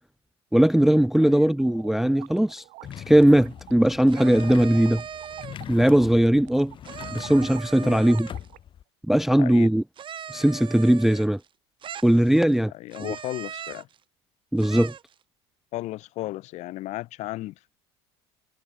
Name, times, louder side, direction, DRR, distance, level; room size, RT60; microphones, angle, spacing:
voice 1, 0.5-2.6 3.1-5.0 5.7-6.7 7.1-8.3 9.1-9.8 10.3-11.4 12.0-12.7 13.0-13.1 14.5-14.9, right 1 dB, ahead, 0.4 m, -19 dB
voice 2, 1.2-1.5 7.8-8.0 9.4-9.7 12.7-13.9 15.7-17.5, left 17 dB, 60° left, 1.7 m, -34 dB
sound 1, 1.6-8.6, right 23 dB, 70° right, 6.9 m, -48 dB
sound 2, 2.8-8.8, left 10 dB, 40° left, 1.1 m, -41 dB
sound 3, 4.1-5.7 6.8-8.5 10.0-11.5 11.8-12.6 12.9-14.0 14.6-15.1, right 9 dB, 40° right, 3.6 m, -39 dB
supercardioid pair, 100°, 13 cm